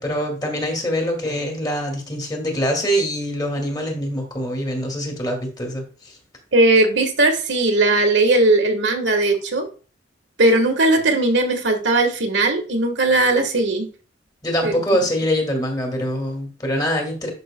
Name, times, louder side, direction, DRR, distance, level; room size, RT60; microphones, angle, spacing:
voice 1, 0.0-5.9 14.4-17.3, equal, 20° left, 2 dB, 2.1 m, -24 dB
voice 2, 6.5-9.7 10.4-13.9 14.6-14.7, right 2 dB, 75° right, 4 dB, 1.4 m, -18 dB
11.0 x 6.0 x 2.2 m, 0.37 s
head